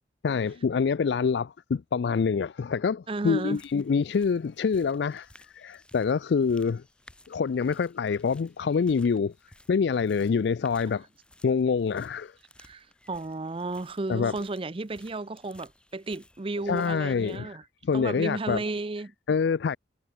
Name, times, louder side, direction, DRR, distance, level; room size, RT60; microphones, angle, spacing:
voice 1, 0.2-6.8 7.3-9.3 9.7-11.0 11.4-12.3 14.1-14.4 16.7-17.6 17.8-18.6 19.3-19.8, left 5 dB, 65° left, 0.4 m, -26 dB
voice 2, 3.1-3.6 12.6-17.6 17.9-19.1, right 2 dB, 30° right, 0.6 m, -33 dB
sound 1, 3.4-17.4, left 1 dB, 5° left, 2.3 m, -58 dB
head